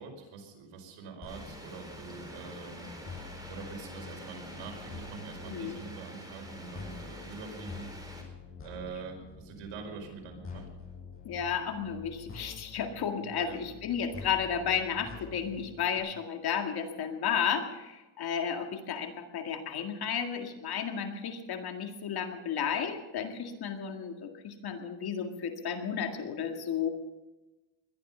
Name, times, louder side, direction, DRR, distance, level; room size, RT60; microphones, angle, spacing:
voice 1, 0.0-7.9 8.6-10.7 13.4-13.6, right 4 dB, 85° right, 3 dB, 5.1 m, -44 dB
sound 1, 1.2-16.0, left 4 dB, 25° left, 7.3 m, -47 dB
sound 2, 1.3-8.2, right 1 dB, 10° right, 4.1 m, -47 dB
voice 2, 5.5-5.8 11.2-26.9, left 7 dB, 50° left, 5 dB, 2.0 m, -33 dB
21.0 x 12.5 x 5.5 m, 1.1 s
cardioid pair, 125°, 48 cm